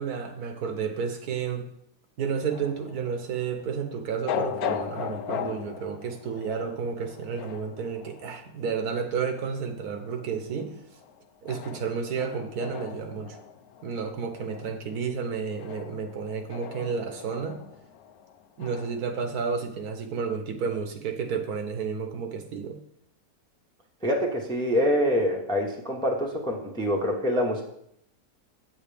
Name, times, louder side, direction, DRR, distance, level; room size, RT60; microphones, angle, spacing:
voice 1, 0.0-1.6 2.2-10.8 11.4-13.4 13.8-17.6 18.6-22.8, right 6 dB, 65° right, 6 dB, 1.2 m, -31 dB
sound 1, 2.5-19.0, left 8 dB, 70° left, 1.0 m, -38 dB
voice 2, 24.0-27.6, equal, 5° left, 1 dB, 0.7 m, -25 dB
8.1 x 7.5 x 3.4 m, 0.74 s
omnidirectional pair, 1.8 m